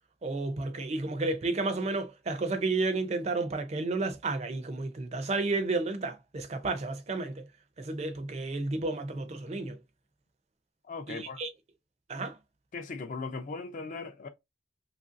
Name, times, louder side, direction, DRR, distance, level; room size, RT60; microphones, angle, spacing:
voice 1, 0.2-7.5 7.8-9.8 11.1-11.5 12.1-12.4, right 3 dB, 35° right, 0.4 m, -32 dB
voice 2, 10.9-11.4 12.7-14.3, left 4 dB, 45° left, 0.4 m, -38 dB
3.0 x 2.5 x 2.5 m
head